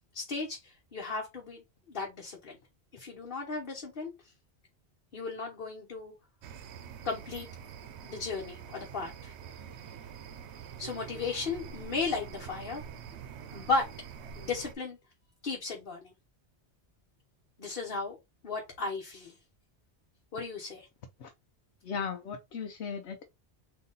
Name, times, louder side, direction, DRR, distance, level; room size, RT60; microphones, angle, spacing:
voice 1, 0.1-2.6 2.9-4.1 5.1-6.1 7.0-7.5 8.0-9.3 10.8-12.8 13.5-13.9 14.3-15.0 15.4-16.1 17.6-18.2 18.4-19.3 20.3-20.9, left 4 dB, 55° left, 1.2 m, -35 dB
sound 1, 6.4-14.7, right 7 dB, 85° right, 0.9 m, -46 dB
voice 2, 21.8-23.3, left 6 dB, 80° left, 0.9 m, -37 dB
4.0 x 2.8 x 3.8 m
omnidirectional pair, 1.1 m